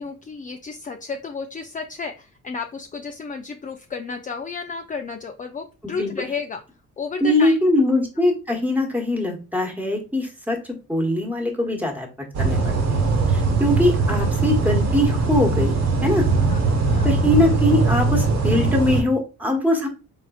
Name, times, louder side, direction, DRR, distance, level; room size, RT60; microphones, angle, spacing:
voice 1, 0.0-6.6 7.0-7.6 14.1-14.3 16.5-17.2, left 4 dB, 25° left, 4 dB, 0.5 m, -32 dB
voice 2, 7.2-12.1 12.4-15.7 16.0-16.2 17.0-19.9, left 1 dB, 5° right, 2 dB, 1.4 m, -22 dB
sound 1, 12.3-19.0, right 3 dB, 60° right, 1.2 m, -20 dB
4.2 x 3.9 x 2.4 m, 0.32 s
cardioid pair, 90°, 30 cm